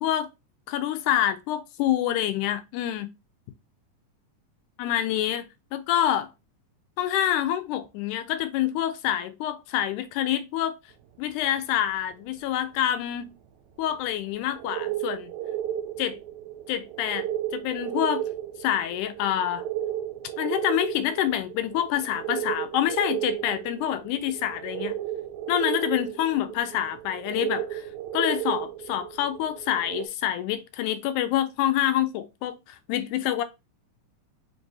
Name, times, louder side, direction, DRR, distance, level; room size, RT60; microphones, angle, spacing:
voice 1, 0.7-3.1 4.8-5.4 5.7-6.3 7.0-10.8 11.2-13.3 13.8-15.3 16.0-16.2 16.7-17.3 17.5-18.3 18.6-19.6 20.4-25.0 25.5-27.9 28.1-33.4, left 11 dB, 80° left, 2.0 m, -27 dB
sound 1, 13.9-14.0 14.5-30.1, right 12 dB, 80° right, 1.7 m, -33 dB
5.3 x 2.4 x 3.8 m
omnidirectional pair, 3.7 m